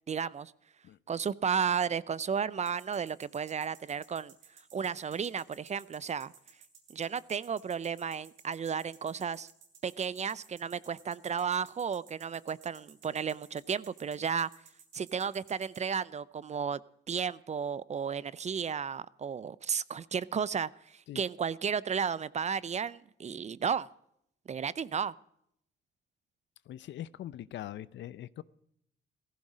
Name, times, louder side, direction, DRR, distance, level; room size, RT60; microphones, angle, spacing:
voice 1, 0.1-0.5 1.1-4.3 4.7-6.3 6.9-9.5 9.8-14.5 14.9-16.8 17.1-23.9 24.5-25.1, right 7 dB, 35° right, 21 dB, 0.5 m, -33 dB
sound 1, 2.7-15.8, right 7 dB, 80° right, 3.5 m, -56 dB
voice 2, 26.7-28.4, left 12 dB, 70° left, 19 dB, 0.6 m, -42 dB
16.0 x 14.5 x 5.0 m, 0.72 s
cardioid pair, 90°, 20 cm